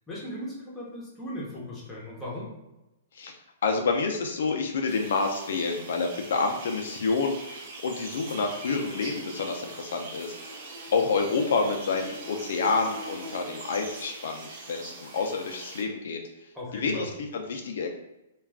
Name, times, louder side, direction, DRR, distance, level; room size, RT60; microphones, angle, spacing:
voice 1, 0.1-2.5 16.5-17.1, left 1 dB, 5° left, -6 dB, 0.8 m, -37 dB
voice 2, 3.1-10.6 10.9-17.9, left 4 dB, 65° left, 3 dB, 0.4 m, -29 dB
sound 1, 4.9-15.8, right 2 dB, 40° right, 0.5 m, -42 dB
2.3 x 2.3 x 3.4 m, 0.94 s
hypercardioid pair, 165°, 0 cm